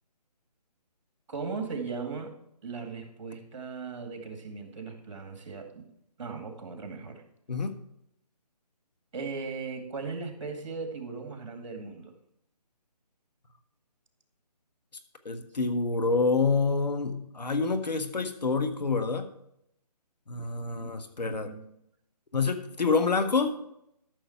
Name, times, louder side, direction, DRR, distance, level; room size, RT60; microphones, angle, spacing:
voice 1, 1.3-2.4 2.6-5.9 6.2-7.2 9.1-12.1 20.8-20.9 21.3-21.7, right 4 dB, 50° right, 5 dB, 2.2 m, -38 dB
voice 2, 15.2-19.3 20.3-21.5 22.3-23.6, left 4 dB, 80° left, 8 dB, 1.6 m, -27 dB
13.0 x 6.6 x 4.5 m, 0.76 s
hypercardioid pair, 160°, 21 cm